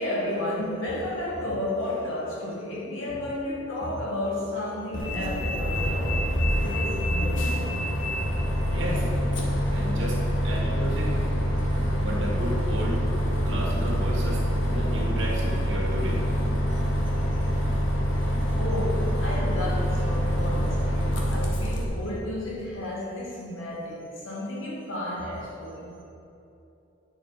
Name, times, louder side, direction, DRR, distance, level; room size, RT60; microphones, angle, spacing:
voice 1, 0.0-7.6 8.2-8.3 18.5-26.0, left 1 dB, 90° left, -4 dB, 2.4 m, -32 dB
Bus, 4.9-21.8, equal, 65° left, 1.5 m, -25 dB
voice 2, 8.7-9.1 9.7-11.2 12.0-13.0 13.4-14.4 14.7-16.2, equal, 65° right, -3 dB, 2.1 m, -33 dB
10.5 x 6.8 x 5.2 m, 2.9 s
head